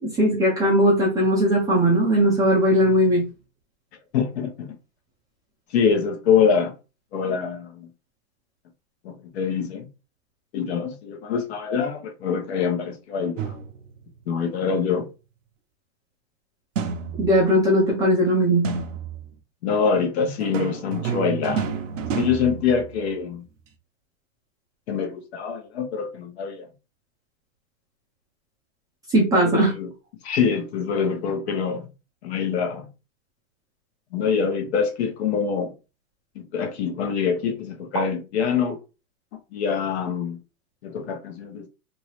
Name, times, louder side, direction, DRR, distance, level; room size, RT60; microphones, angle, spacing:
voice 1, 0.0-3.2 17.2-18.6 29.1-29.7, equal, 10° right, 0.5 m, -19 dB
voice 2, 4.1-4.7 5.7-6.7 7.1-7.9 9.0-9.9 10.5-13.5 14.3-15.1 19.6-21.7 22.2-23.4 24.9-26.7 29.5-29.9 30.2-31.9 32.2-32.9 34.1-35.7 36.4-38.8 39.5-40.4 40.8-41.7, left 6 dB, 50° left, 0.9 m, -25 dB
sound 1, 13.4-14.0 16.8-17.6 18.6-19.4 20.4-23.4, right 6 dB, 60° right, 0.7 m, -30 dB
2.8 x 2.8 x 3.1 m
hypercardioid pair, 145°, 42 cm